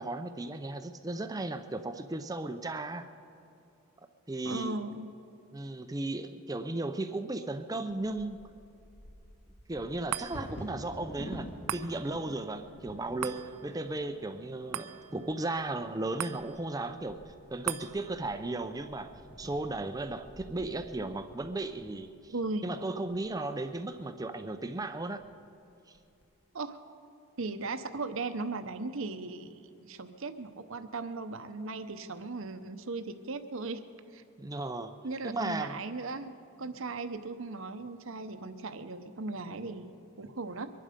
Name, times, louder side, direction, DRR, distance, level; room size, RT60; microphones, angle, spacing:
voice 1, 0.0-3.1 4.3-4.8 5.5-8.4 9.7-19.1 19.4-22.3 22.6-25.2 25.9-26.0 34.4-34.9 35.2-35.8, right 2 dB, 15° right, 8 dB, 0.5 m, -35 dB
voice 2, 4.4-5.1 10.6-10.8 22.3-22.7 26.5-26.8 27.4-33.8 34.1-34.2 35.0-40.7, right 3 dB, 60° right, 9 dB, 0.8 m, -37 dB
Bird vocalization bird call bird song / Wind / Thunder, 7.9-23.8 24.4-24.5 24.9-25.3 25.7-26.2, equal, 50° left, 1.7 m, -50 dB
sound 1, 10.1-22.7 23.1-23.2, right 10 dB, 85° right, 0.5 m, -44 dB
23.5 x 11.0 x 5.1 m, 2.8 s
head